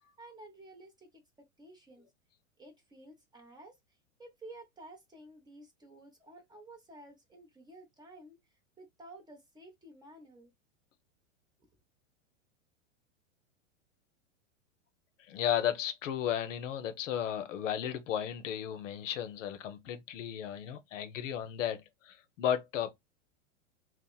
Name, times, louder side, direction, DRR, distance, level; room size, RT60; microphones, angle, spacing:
voice 1, 0.2-1.2 1.6-2.0 2.6-3.7 4.2-8.4 8.8-10.5, right 1 dB, 10° right, 0.6 m, -52 dB
voice 2, 15.2-22.9, left 10 dB, 70° left, 0.6 m, -34 dB
2.8 x 2.0 x 2.2 m
hypercardioid pair, 115°, 39 cm